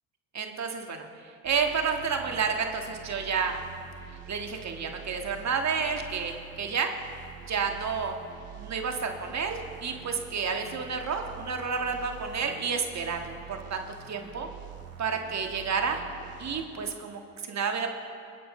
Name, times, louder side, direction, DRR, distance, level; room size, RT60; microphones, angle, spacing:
voice 1, 0.3-1.1 1.4-3.6 4.3-6.9 7.5-8.1 8.6-14.5 15.0-16.0 16.4-17.9, right 5 dB, 40° right, 4 dB, 1.9 m, -30 dB
sound 1, 1.4-17.0, right 7 dB, 60° right, 1.9 m, -46 dB
28.5 x 9.7 x 3.3 m, 2.4 s
hypercardioid pair, 55°, 41 cm